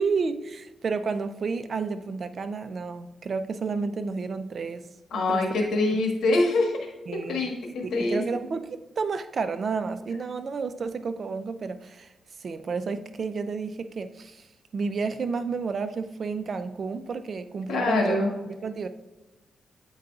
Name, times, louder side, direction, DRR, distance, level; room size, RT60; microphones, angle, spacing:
voice 1, 0.0-4.8 5.1-5.7 7.1-7.5 7.8-12.1 12.4-14.5 14.7-18.2 18.5-18.9, right 4 dB, 50° right, 10 dB, 0.5 m, -31 dB
voice 2, 5.1-6.7 7.3-8.2 17.7-18.3, left 2 dB, 85° left, 2 dB, 1.4 m, -24 dB
9.0 x 4.7 x 2.4 m, 1.1 s
cardioid pair, 95°, 0 cm